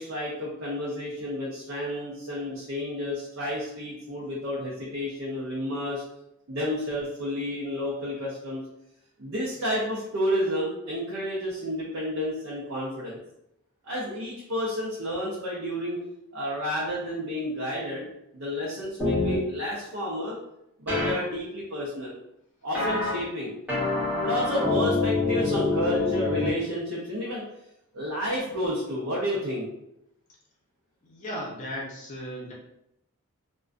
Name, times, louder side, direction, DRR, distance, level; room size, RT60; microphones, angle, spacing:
voice 1, 0.0-6.0 6.5-8.6 9.2-13.2 13.8-16.0 16.3-18.0 18.3-20.3 20.8-22.1 22.6-23.5 24.2-27.4 27.9-29.7, equal, 60° right, -5 dB, 0.6 m, -30 dB
sound 1, 19.0-19.4 20.9-21.1 22.7-23.1 23.7-26.5, left 3 dB, 5° right, 0.7 m, -26 dB
voice 2, 31.0-32.5, equal, 35° left, -3 dB, 0.6 m, -36 dB
2.4 x 2.2 x 2.4 m, 0.80 s
head